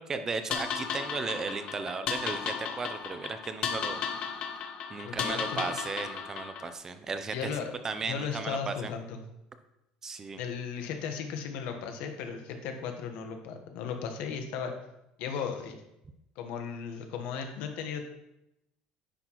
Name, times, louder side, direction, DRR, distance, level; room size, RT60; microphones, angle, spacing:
voice 1, 0.0-4.0 4.9-7.5 7.8-8.9 10.0-10.4, right 4 dB, 20° right, 9 dB, 0.5 m, -35 dB
sound 1, 0.5-6.7, left 7 dB, 40° left, 0.7 m, -35 dB
voice 2, 5.0-5.6 7.3-7.7 8.1-9.2 10.4-14.7 15.2-15.8 16.4-18.1, left 6 dB, 65° left, 5 dB, 1.2 m, -36 dB
10.0 x 5.8 x 3.0 m, 0.86 s
cardioid pair, 155°, 3 cm